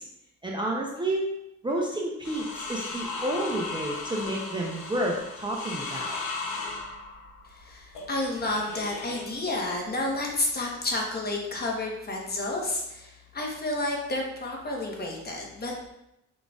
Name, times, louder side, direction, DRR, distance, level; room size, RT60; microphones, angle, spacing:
voice 1, 0.4-1.3 1.6-6.2, right 1 dB, 15° right, -2 dB, 0.6 m, -30 dB
sound 1, 2.2-9.4 10.3-10.9, left 3 dB, 75° left, 0.9 m, -37 dB
voice 2, 7.6-15.8, left 2 dB, 30° left, -1 dB, 1.1 m, -30 dB
5.0 x 3.8 x 2.4 m, 0.85 s
cardioid pair, 90°, 30 cm